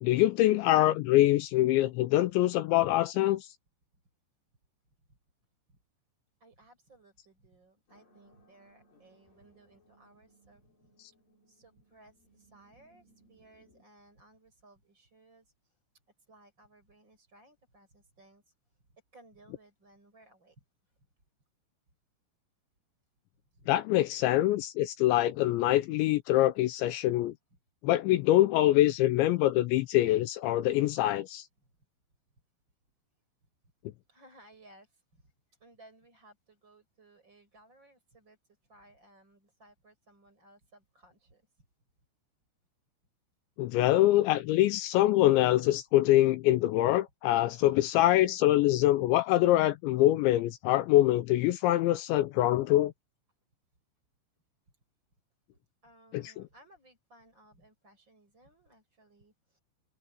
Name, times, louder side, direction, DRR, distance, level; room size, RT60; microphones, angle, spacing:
voice 1, 0.0-3.5 23.7-27.3 27.8-31.5 43.6-52.9 56.1-56.2, left 15 dB, 80° left, 2.8 m, -24 dB
voice 2, 6.4-10.6 11.5-15.8 16.3-18.5 19.1-20.6 31.6-31.7 34.1-35.3 35.6-38.4 38.7-41.4 55.8-59.6, right 1 dB, 20° right, 8.6 m, -60 dB
sound 1, 7.9-13.8, right 1 dB, 45° left, 8.8 m, -65 dB
omnidirectional pair, 5.7 m